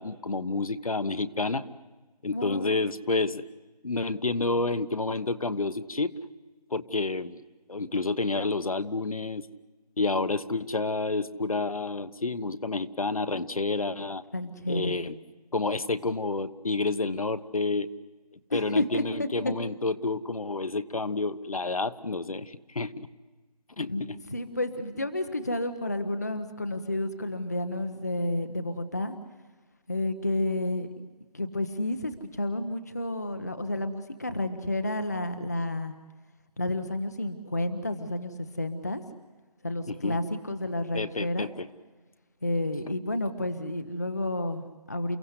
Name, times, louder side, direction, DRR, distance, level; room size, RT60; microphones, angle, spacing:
voice 1, 0.0-1.6 2.2-3.4 3.8-6.1 6.7-7.4 7.7-9.5 10.0-14.2 14.7-15.2 15.5-17.9 18.5-23.1 23.8-24.2 39.9-40.2 40.9-41.7 42.8-42.9, left 3 dB, 60° left, 11 dB, 1.1 m, -29 dB
voice 2, 2.3-2.8 14.3-15.0 18.5-19.3 23.9-29.2 29.9-30.9 31.3-35.9 36.6-39.0 39.6-41.5 42.4-45.2, left 1 dB, 25° left, 8 dB, 0.7 m, -31 dB
29.5 x 16.0 x 8.0 m, 1.2 s
figure-of-eight pair, 180°, 20 cm